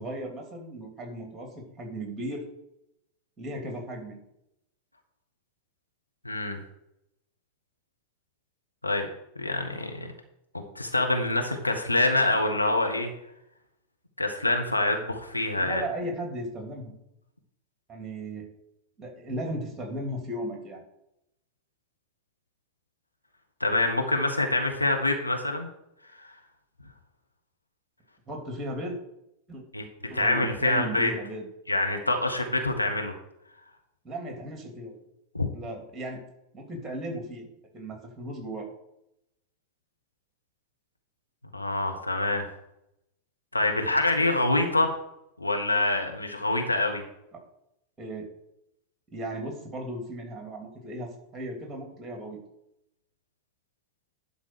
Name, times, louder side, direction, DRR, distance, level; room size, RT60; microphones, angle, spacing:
voice 1, 0.0-1.5 1.8-2.4 3.4-4.2 15.6-16.9 17.9-18.5 19.0-20.8 28.3-29.0 29.5-29.6 30.1-31.5 34.0-35.0 35.5-36.2 36.5-37.5 37.7-38.6 48.0-48.3 49.1-52.4, right 1 dB, 15° right, 2 dB, 2.9 m, -36 dB
voice 2, 6.2-6.6 8.8-9.1 9.4-10.1 10.5-13.1 14.2-15.8 23.6-25.7 26.2-26.3 29.7-29.8 30.1-31.1 31.7-33.1 35.3-35.5 41.5-42.5 43.5-44.9 45.4-47.0, left 2 dB, 85° left, 3 dB, 1.2 m, -26 dB
11.0 x 4.0 x 6.4 m, 0.82 s
figure-of-eight pair, 90°, 0 cm